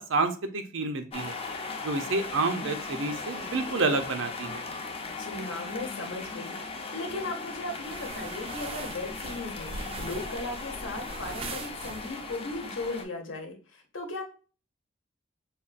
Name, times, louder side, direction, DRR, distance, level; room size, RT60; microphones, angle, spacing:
voice 1, 0.0-1.4 1.8-4.6, right 3 dB, 80° right, 8 dB, 0.5 m, -29 dB
sound 1, 1.1-13.0, left 4 dB, 30° left, 0.5 m, -38 dB
voice 2, 5.2-6.6 6.9-14.2, left 2 dB, 80° left, 2 dB, 0.9 m, -37 dB
sound 2, 7.8-12.4, right 3 dB, 30° right, 0.3 m, -41 dB
5.2 x 2.3 x 2.4 m, 0.37 s
head